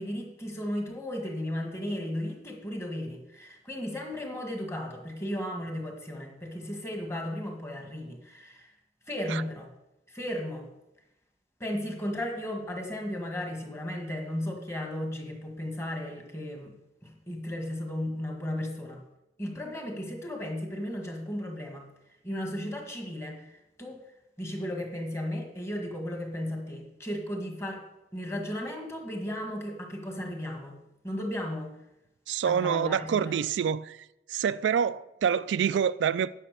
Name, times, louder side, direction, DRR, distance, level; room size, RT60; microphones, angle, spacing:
voice 1, 0.0-8.7 9.1-9.7 10.1-10.6 11.6-16.7 17.0-19.0 19.4-21.9 22.2-24.0 24.4-27.8 28.1-30.8 31.0-31.7 32.4-33.5, left 1 dB, 15° left, 1.6 m, -35 dB
voice 2, 32.3-34.0 34.3-36.3, right 7 dB, 85° right, 0.3 m, -26 dB
10.0 x 5.6 x 6.6 m
head